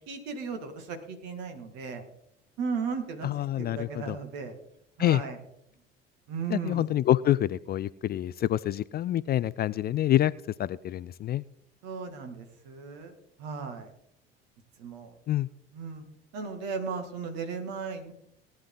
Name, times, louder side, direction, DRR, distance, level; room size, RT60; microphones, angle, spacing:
voice 1, 0.0-2.0 2.6-4.5 5.0-5.4 6.3-6.8 11.8-13.9 14.8-15.2 15.7-16.0 16.3-18.1, right 5 dB, 60° right, 6 dB, 2.5 m, -36 dB
voice 2, 3.2-4.2 5.0-5.2 6.5-10.3 10.6-11.4 15.3-15.5, left 12 dB, 35° left, 19 dB, 0.4 m, -27 dB
18.0 x 9.8 x 4.0 m, 0.76 s
figure-of-eight pair, 60°, 30 cm